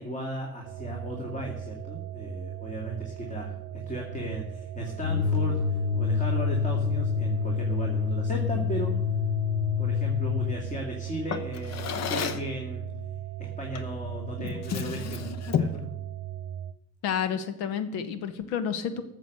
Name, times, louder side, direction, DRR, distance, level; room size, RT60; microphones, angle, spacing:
voice 1, 0.0-8.9 9.8-12.9 13.4-15.9, equal, 15° left, 1 dB, 2.2 m, -36 dB
sound 1, 0.6-16.7, right 11 dB, 45° right, 0.7 m, -38 dB
sound 2, 5.0-10.6, left 7 dB, 80° left, 0.5 m, -27 dB
Drawer open or close, 11.3-12.6 13.7-14.0 14.4-15.9, left 8 dB, 35° left, 1.0 m, -31 dB
voice 2, 17.0-19.0, left 7 dB, 60° left, 12 dB, 1.4 m, -30 dB
14.5 x 6.7 x 6.6 m, 0.91 s
figure-of-eight pair, 65°, 43 cm